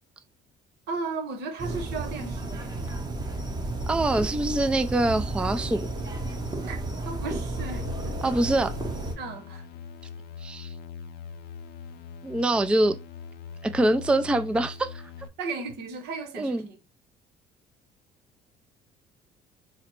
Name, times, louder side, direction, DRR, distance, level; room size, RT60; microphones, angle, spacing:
voice 1, 0.9-2.7 6.7-6.8 7.0-8.2 9.2-9.6 15.4-16.8, right 4 dB, 80° right, 1.1 m, -35 dB
sound 1, 1.6-9.1, right 2 dB, 25° right, 0.9 m, -32 dB
voice 2, 3.9-5.9 8.2-8.7 10.4-10.7 12.2-13.0 13.6-14.9 16.4-16.7, right 1 dB, 5° right, 0.3 m, -24 dB
sound 2, 7.6-15.3, left 6 dB, 70° left, 0.6 m, -42 dB
3.9 x 2.0 x 4.4 m
cardioid pair, 110°, 17 cm